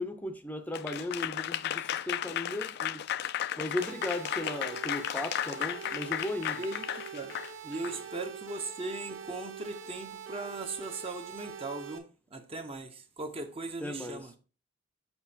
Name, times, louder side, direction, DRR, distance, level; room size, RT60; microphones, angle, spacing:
voice 1, 0.0-3.0 3.6-6.6 7.9-8.0 13.8-14.4, left 1 dB, 10° left, 0.6 m, -36 dB
Applause / Crowd, 0.7-8.0, left 11 dB, 55° left, 0.3 m, -34 dB
sound 1, 3.8-12.0, right 7 dB, 85° right, 0.9 m, -44 dB
voice 2, 7.6-12.1 12.3-14.3, right 3 dB, 30° right, 0.7 m, -38 dB
7.1 x 6.1 x 2.8 m
head